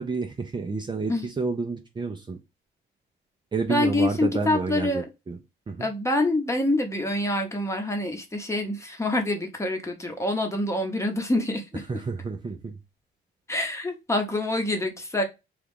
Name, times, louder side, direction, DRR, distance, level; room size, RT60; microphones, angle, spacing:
voice 1, 0.0-2.4 3.5-5.4 5.7-5.9 11.9-12.8, right 4 dB, 25° right, 3 dB, 0.5 m, -30 dB
voice 2, 3.7-5.0 5.8-11.9 13.5-15.2, left 1 dB, 15° left, 4 dB, 0.9 m, -26 dB
3.0 x 2.4 x 3.5 m, 0.24 s
cardioid pair, 90°, 20 cm